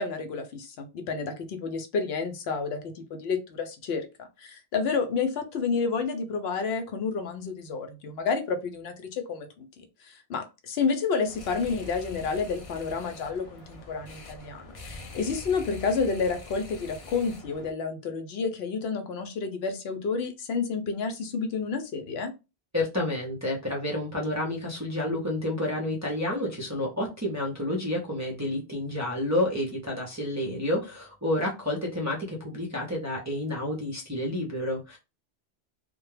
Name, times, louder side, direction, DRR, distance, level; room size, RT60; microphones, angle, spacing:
voice 1, 0.0-22.3, left 5 dB, 70° left, 6 dB, 0.8 m, -30 dB
sound 1, 11.2-17.7, left 2 dB, 45° left, 0.4 m, -44 dB
voice 2, 22.7-35.0, left 1 dB, 25° right, -3 dB, 0.4 m, -30 dB
2.2 x 2.1 x 3.1 m, 0.27 s
omnidirectional pair, 1.1 m